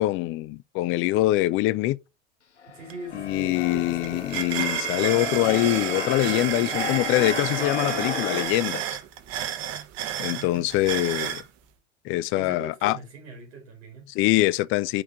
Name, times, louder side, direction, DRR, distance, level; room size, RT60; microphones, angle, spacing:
voice 1, 0.0-2.0 3.1-9.0 10.2-11.4 12.0-13.0 14.1-15.0, left 17 dB, 40° left, 0.5 m, -24 dB
Keyboard (musical), 2.6-8.5, left 6 dB, 90° left, 0.6 m, -33 dB
voice 2, 2.7-4.4 10.2-10.7 12.3-14.1, right 3 dB, 65° right, 2.8 m, -41 dB
sound 1, 2.9-3.0 3.3-11.5, right 10 dB, 50° right, 1.1 m, -31 dB
9.6 x 3.6 x 3.6 m
figure-of-eight pair, 70°, 33 cm